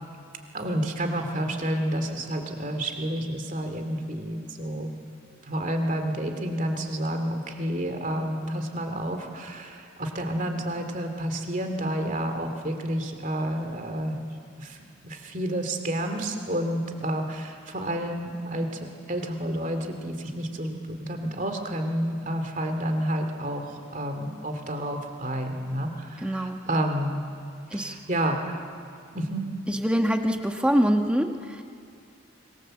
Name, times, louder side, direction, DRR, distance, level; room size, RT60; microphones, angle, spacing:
voice 1, 0.5-4.9 5.4-14.2 14.6-27.3 27.7-28.7 29.1-29.5, right 1 dB, 40° right, 5 dB, 2.6 m, -30 dB
voice 2, 26.2-26.6 27.7-27.9 29.7-31.6, equal, 5° right, 4 dB, 1.3 m, -24 dB
25.5 x 21.5 x 7.8 m, 2.4 s
head